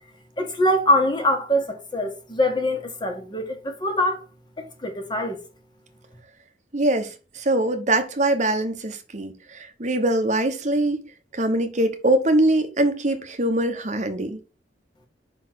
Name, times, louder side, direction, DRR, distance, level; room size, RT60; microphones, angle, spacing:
voice 1, 0.4-4.2 4.6-5.4, left 1 dB, 25° left, 1.6 m, -23 dB
voice 2, 6.7-14.4, right 1 dB, 45° right, 1.1 m, -23 dB
5.9 x 4.1 x 6.0 m
head